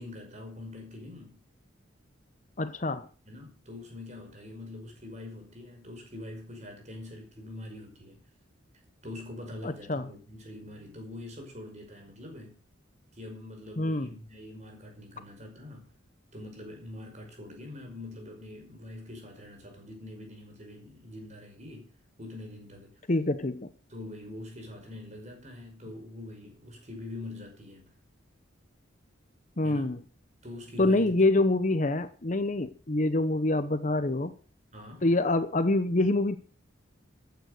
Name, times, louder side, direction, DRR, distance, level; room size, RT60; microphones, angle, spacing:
voice 1, 0.0-1.4 3.3-8.2 9.0-12.6 13.1-15.9 16.3-21.9 22.2-23.0 23.9-27.9 29.6-29.9 30.4-31.1 34.7-35.0, left 2 dB, 35° right, 3 dB, 5.4 m, -44 dB
voice 2, 2.6-3.1 9.6-10.1 13.8-14.1 23.1-23.7 29.6-30.0 30.8-34.3 35.0-36.4, left 2 dB, 35° left, 12 dB, 0.8 m, -26 dB
14.5 x 9.3 x 6.5 m, 0.39 s
head